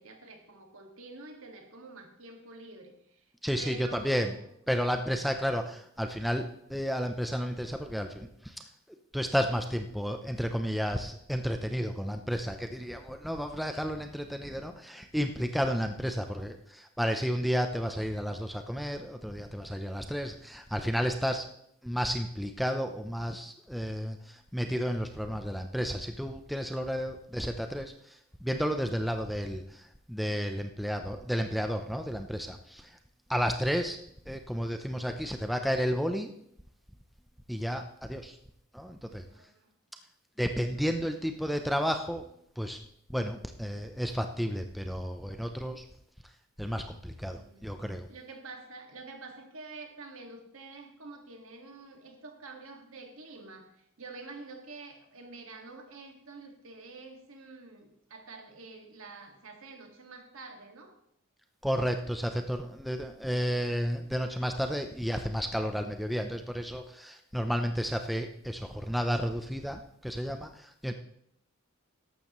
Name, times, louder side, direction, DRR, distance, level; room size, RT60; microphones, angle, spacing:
voice 1, 0.0-3.3 3.6-4.5 5.2-5.4 14.3-14.7 39.1-39.7 40.7-41.1 47.2-47.7 48.1-60.9 70.3-70.4, right 3 dB, 65° right, 3 dB, 1.9 m, -48 dB
voice 2, 3.4-4.3 4.7-8.6 9.1-21.5 21.8-33.0 33.3-36.3 37.5-38.4 38.7-39.2 40.4-42.2 42.6-42.8 43.1-45.8 46.6-48.1 61.6-70.9, equal, ahead, 5 dB, 0.5 m, -32 dB
13.5 x 11.0 x 3.1 m, 0.73 s
head